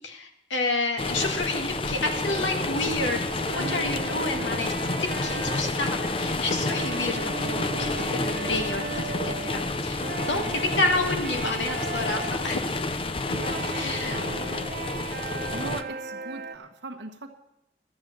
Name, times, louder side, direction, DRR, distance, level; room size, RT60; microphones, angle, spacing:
voice 1, 0.0-4.7 5.0-8.9 9.2-12.6 13.7-14.2, left 2 dB, 80° left, 4 dB, 1.9 m, -29 dB
sound 1, 1.0-15.8, left 2 dB, 30° left, 0.5 m, -30 dB
sound 2, 2.3-16.6, right 4 dB, 50° right, 0.8 m, -37 dB
voice 2, 3.6-3.9 10.3-10.5 13.2-14.7 15.5-17.3, right 2 dB, 70° right, 3 dB, 1.2 m, -39 dB
13.0 x 8.6 x 7.5 m, 0.85 s
head